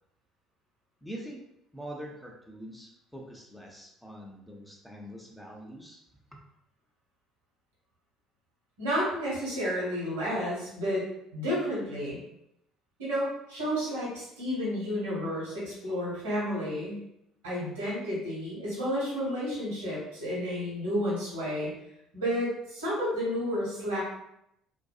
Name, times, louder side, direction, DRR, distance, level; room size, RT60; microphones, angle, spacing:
voice 1, 1.0-1.4 1.7-6.0 6.3-6.4, right 1 dB, 5° left, -1 dB, 0.5 m, -44 dB
voice 2, 8.8-11.0 11.3-12.2 13.0-17.0 17.4-21.7 22.1-24.0, equal, 80° right, -6 dB, 1.1 m, -31 dB
2.6 x 2.3 x 2.3 m, 0.79 s
figure-of-eight pair, 55°, 0 cm